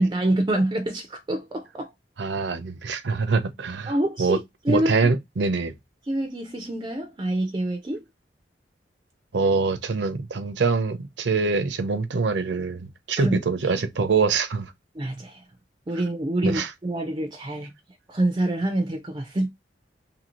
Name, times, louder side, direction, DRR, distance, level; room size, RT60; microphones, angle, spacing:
voice 1, 0.0-1.9 3.9-4.4 4.6-4.9 6.1-8.0 13.2-13.4 14.9-15.4 15.9-17.7 18.1-19.5, right 1 dB, 25° right, 0.4 m, -26 dB
voice 2, 2.2-3.9 4.2-4.4 4.7-5.7 9.3-14.7 16.4-16.7, right 4 dB, 70° right, 0.6 m, -24 dB
2.8 x 2.6 x 2.9 m
head